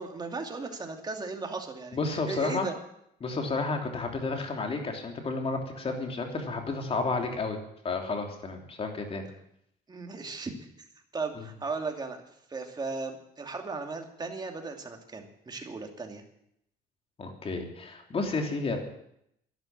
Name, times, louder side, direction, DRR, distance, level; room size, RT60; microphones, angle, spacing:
voice 1, 0.0-2.7 9.9-10.7 11.1-16.2, right 3 dB, 25° right, 3 dB, 2.7 m, -36 dB
voice 2, 1.9-2.7 3.2-7.6 7.8-9.2 11.4-11.5 17.2-18.8, left 3 dB, 35° left, 3 dB, 3.3 m, -31 dB
12.0 x 11.0 x 8.8 m, 0.76 s
cardioid pair, 110°, 17 cm